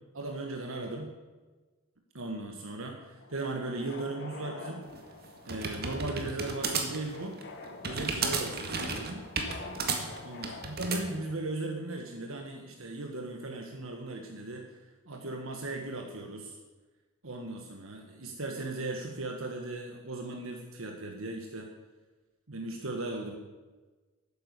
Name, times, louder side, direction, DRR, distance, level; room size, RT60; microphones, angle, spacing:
voice 1, 0.1-1.1 2.1-4.9 5.5-7.4 7.8-9.2 10.2-14.8 15.1-16.6 17.2-21.7 22.5-23.4, right 2 dB, 65° right, 2 dB, 1.6 m, -37 dB
sound 1, 3.2-11.4, left 3 dB, 50° left, 1.7 m, -47 dB
sound 2, 4.9-11.0, right 4 dB, 45° right, 1.9 m, -33 dB
12.5 x 9.8 x 8.3 m, 1.3 s
head